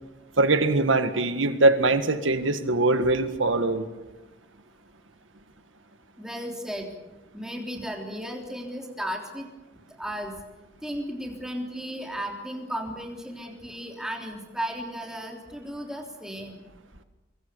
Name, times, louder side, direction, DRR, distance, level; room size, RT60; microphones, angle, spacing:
voice 1, 0.4-3.9, right 2 dB, 80° right, 9 dB, 1.9 m, -22 dB
voice 2, 6.2-6.9 7.3-9.5 10.0-10.3 10.8-16.6, equal, 5° right, 1 dB, 3.4 m, -35 dB
24.0 x 23.0 x 6.9 m, 1.1 s
head